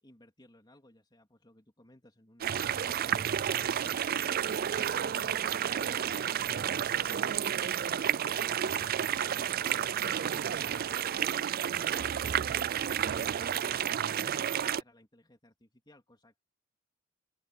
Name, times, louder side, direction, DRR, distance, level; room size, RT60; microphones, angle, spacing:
voice 1, 0.0-3.4 4.2-9.2 10.0-16.4, left 1 dB, 20° left, 3.4 m, -59 dB
sound 1, 2.4-14.8, right 9 dB, 45° right, 0.4 m, -31 dB
open air
head